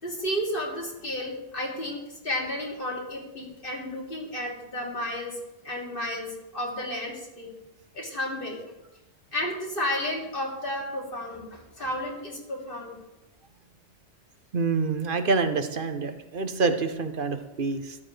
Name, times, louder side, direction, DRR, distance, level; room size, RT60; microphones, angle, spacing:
voice 1, 0.0-5.4 5.6-7.5 7.9-8.6 9.3-13.0, left 1 dB, 50° left, -3 dB, 2.9 m, -32 dB
voice 2, 14.5-18.0, right 4 dB, 55° right, 8 dB, 1.0 m, -27 dB
13.5 x 10.0 x 3.3 m, 0.95 s
omnidirectional pair, 1.1 m